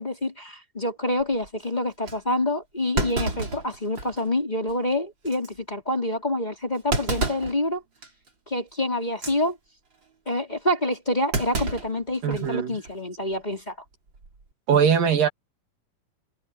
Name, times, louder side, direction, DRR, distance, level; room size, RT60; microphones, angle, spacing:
voice 1, 0.0-7.8 8.5-9.6 10.3-13.7, left 1 dB, 10° left, 4.2 m, -27 dB
Thump thud, 1.2-1.5 2.1-2.2 3.0-4.3 4.7-4.8 5.3-5.5 6.9-7.6 8.0-8.3 9.1-9.4 11.3-12.5 12.9-13.0 14.1-14.4, right 3 dB, 30° right, 4.2 m, -29 dB
voice 2, 12.2-12.8 14.7-15.3, right 7 dB, 70° right, 4.1 m, -21 dB
omnidirectional pair, 4.1 m